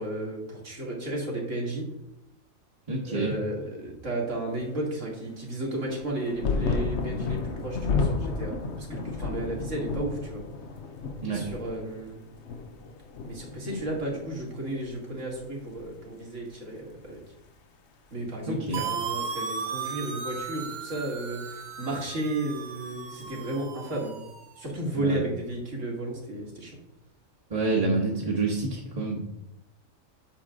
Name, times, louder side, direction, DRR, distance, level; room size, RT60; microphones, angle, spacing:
voice 1, 0.0-1.9 3.1-10.4 11.2-12.2 13.2-17.2 18.1-24.2 24.6-26.8, right 1 dB, 65° right, -2 dB, 2.5 m, -33 dB
voice 2, 2.9-3.3 11.2-11.4 18.5-18.8 24.9-25.2 27.5-29.2, right 3 dB, 30° right, -3 dB, 1.3 m, -27 dB
sound 1, 5.9-14.9 15.2-16.1 17.0-17.1, left 4 dB, 60° left, 1.0 m, -32 dB
sound 2, 18.7-24.5, right 6 dB, 50° right, 0.6 m, -36 dB
8.7 x 6.4 x 3.7 m, 0.84 s
omnidirectional pair, 1.4 m